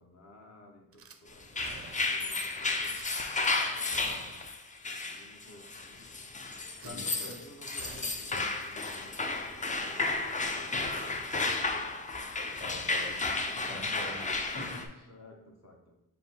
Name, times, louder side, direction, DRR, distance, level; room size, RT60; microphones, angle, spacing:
voice 1, 0.0-2.9 3.4-4.3 4.8-6.2 6.8-11.9 15.1-15.9, left 2 dB, 45° left, 1 dB, 1.0 m, -53 dB
Gunshot gunfire / Glass, 0.9-1.2 1.6-2.3 2.9-3.5 3.9-4.6 4.9-5.0 5.4-5.5 6.7-7.4 7.8-9.6 9.9-10.1, right 5 dB, 40° right, 0.4 m, -51 dB
sound 1, 1.4-14.9, left 3 dB, 20° left, 0.4 m, -33 dB
voice 2, 6.8-7.2 12.6-13.3 13.7-14.2 14.5-15.1, left 1 dB, 80° left, -4 dB, 1.6 m, -44 dB
5.4 x 2.2 x 4.3 m, 0.89 s
wide cardioid pair, 105°, 36 cm